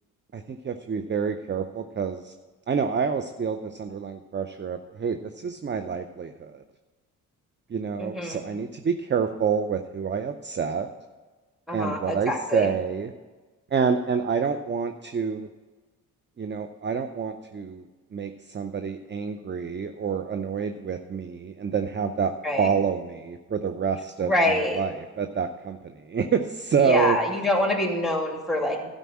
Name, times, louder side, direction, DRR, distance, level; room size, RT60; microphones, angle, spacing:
voice 1, 0.3-2.3 2.7-6.6 7.7-10.9 11.7-13.1 13.7-15.5 16.4-17.8 18.1-27.2, right 6 dB, 25° right, 8 dB, 0.6 m, -28 dB
voice 2, 8.0-8.4 11.7-12.7 22.4-22.7 24.2-24.8 26.8-28.9, left 1 dB, ahead, 2 dB, 2.4 m, -25 dB
12.5 x 5.3 x 7.4 m, 1.3 s
hypercardioid pair, 50°, 42 cm